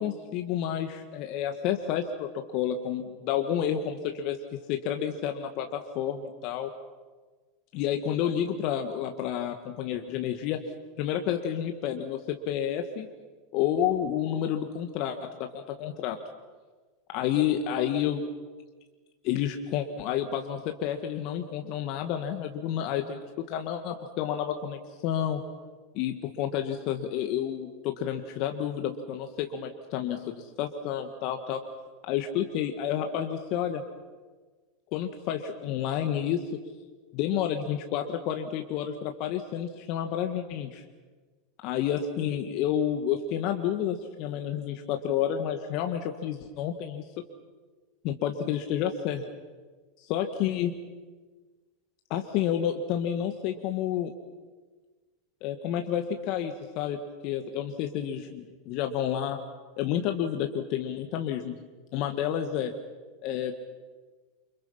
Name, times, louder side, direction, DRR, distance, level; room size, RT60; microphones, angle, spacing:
voice 1, 0.0-4.4 4.7-6.7 7.7-10.6 11.0-13.1 13.5-16.2 17.1-18.2 19.2-23.2 23.5-25.4 25.9-31.6 32.0-33.8 34.9-36.6 37.1-40.8 41.6-47.0 48.0-49.3 50.0-50.7 52.1-54.1 55.4-59.4 59.8-61.6 61.9-62.7 63.2-63.5, left 9 dB, 55° left, 5 dB, 1.9 m, -30 dB
29.0 x 26.5 x 5.7 m, 1.4 s
hypercardioid pair, 90°, 0 cm